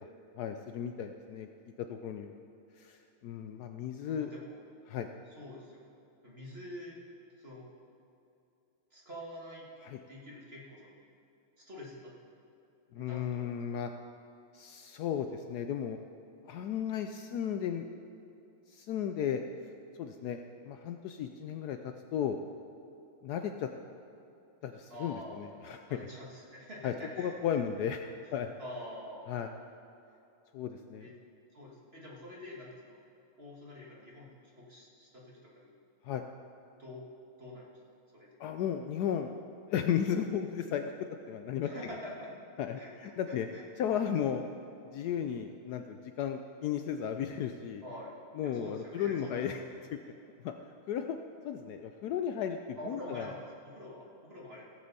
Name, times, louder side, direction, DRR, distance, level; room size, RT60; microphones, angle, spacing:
voice 1, 0.4-1.5 1.9-2.3 2.8-4.3 4.9-5.1 9.8-10.0 12.9-13.9 14.5-16.0 16.5-17.9 18.7-19.4 20.0-22.4 23.2-23.7 24.6-26.0 26.8-28.0 28.3-28.5 29.3-29.5 30.5-31.1 36.0-36.2 38.4-39.3 39.7-40.9 41.3-41.7 42.6-43.5 43.8-44.4 44.9-47.8 48.4-49.6 50.4-50.5 50.9-51.2 51.4-53.3, left 9 dB, 90° left, 6 dB, 0.8 m, -34 dB
voice 2, 4.1-4.6 5.4-5.9 6.2-7.0 7.4-7.7 8.9-9.7 10.1-11.0 11.6-12.1 13.0-13.6 24.9-25.4 25.9-27.3 28.2-28.3 28.6-29.3 31.0-31.1 31.5-33.0 33.4-35.7 36.8-37.0 37.4-37.7 38.1-38.4 39.0-39.1 41.6-42.4 42.8-43.6 47.8-48.1 48.4-49.6 52.8-54.7, left 1 dB, 30° right, -4 dB, 1.9 m, -46 dB
16.5 x 7.8 x 4.1 m, 2.8 s
omnidirectional pair, 2.3 m